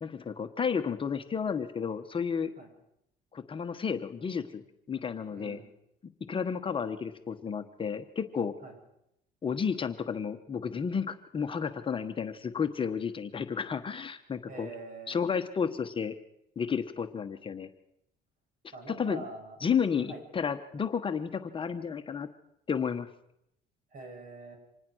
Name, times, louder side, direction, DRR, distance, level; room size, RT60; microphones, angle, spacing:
voice 1, 0.0-2.5 3.3-5.6 6.3-8.5 9.4-14.7 15.1-16.1 16.6-17.7 18.9-19.2 19.6-22.3 22.7-23.1, left 6 dB, 30° left, 7 dB, 1.3 m, -32 dB
voice 2, 5.3-5.7 8.6-8.8 14.5-15.2 18.7-19.6 20.0-20.2 23.9-24.6, right 3 dB, 55° right, 4 dB, 7.7 m, -44 dB
26.0 x 19.0 x 6.4 m, 0.80 s
cardioid pair, 110°, 17 cm